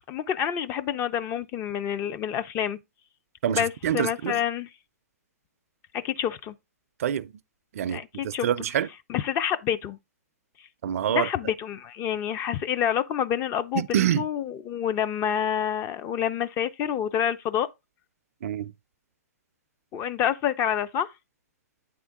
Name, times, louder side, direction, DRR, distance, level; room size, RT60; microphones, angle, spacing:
voice 1, 0.1-2.8 3.5-4.7 5.9-6.5 7.9-8.5 9.1-10.0 11.1-17.7 19.9-21.1, left 9 dB, 25° left, 0.4 m, -28 dB
voice 2, 3.4-4.4 7.0-7.3 7.7-8.9 10.8-11.3 13.8-14.3 18.4-18.7, right 10 dB, 60° right, 0.4 m, -26 dB
8.7 x 3.6 x 3.5 m
hypercardioid pair, 135°, 9 cm